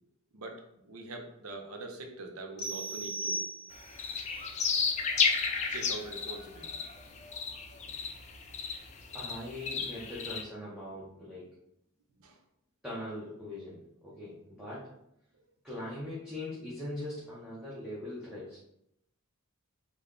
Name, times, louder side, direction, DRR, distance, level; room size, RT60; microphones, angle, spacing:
voice 1, 0.3-3.4 5.7-6.8 12.2-12.4, right 2 dB, 70° right, 3 dB, 0.6 m, -43 dB
sound 1, 2.6-4.1, right 2 dB, 85° left, 0.7 m, -37 dB
sound 2, 3.7-10.4, left 5 dB, 30° left, 0.3 m, -32 dB
voice 2, 9.1-11.5 12.8-14.9 15.6-18.6, left 1 dB, 5° right, -9 dB, 0.7 m, -41 dB
3.4 x 2.2 x 3.6 m, 0.78 s
head